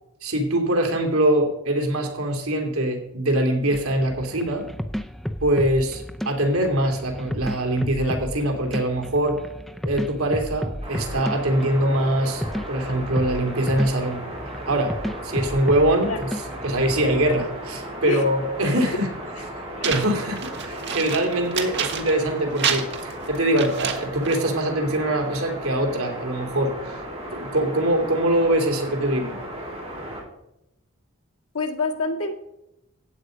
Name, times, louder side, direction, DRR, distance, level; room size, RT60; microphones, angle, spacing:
voice 1, 0.2-4.6 5.4-9.4 9.8-14.2 14.7-14.9 15.2-16.3 16.6-19.1 19.8-22.9 23.3-27.0 27.3-29.3, right 1 dB, 75° right, 3 dB, 2.9 m, -23 dB
sound 1, 3.7-17.4, equal, ahead, 0.5 m, -33 dB
sound 2, 10.8-30.2, right 1 dB, 25° right, 5.1 m, -36 dB
voice 2, 19.7-20.1 31.5-32.3, left 3 dB, 80° left, 2 dB, 2.0 m, -27 dB
sound 3, 19.8-22.3 22.6-24.5, right 7 dB, 50° right, 1.5 m, -29 dB
14.5 x 8.9 x 5.2 m, 0.87 s
head